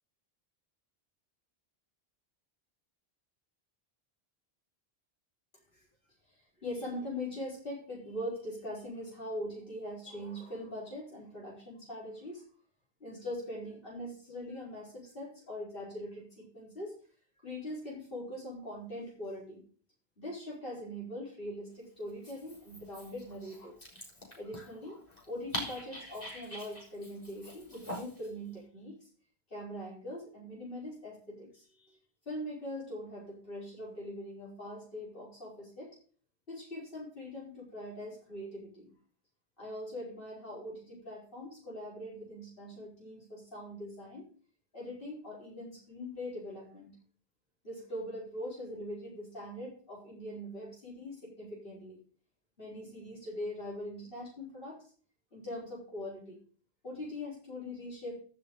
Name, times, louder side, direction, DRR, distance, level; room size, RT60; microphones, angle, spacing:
voice 1, 6.6-12.4 13.0-17.0 17.4-19.6 20.2-23.8 24.4-25.0 25.3-29.0 29.5-32.0 32.3-36.0 36.5-38.9 39.6-44.3 44.7-46.9 47.6-52.0 52.6-54.8 55.3-56.4 56.8-58.2, left 1 dB, 60° left, -5 dB, 4.6 m, -42 dB
Dog, 22.1-28.3, equal, 40° left, 4.2 m, -44 dB
15.0 x 6.9 x 3.9 m, 0.43 s
omnidirectional pair, 1.0 m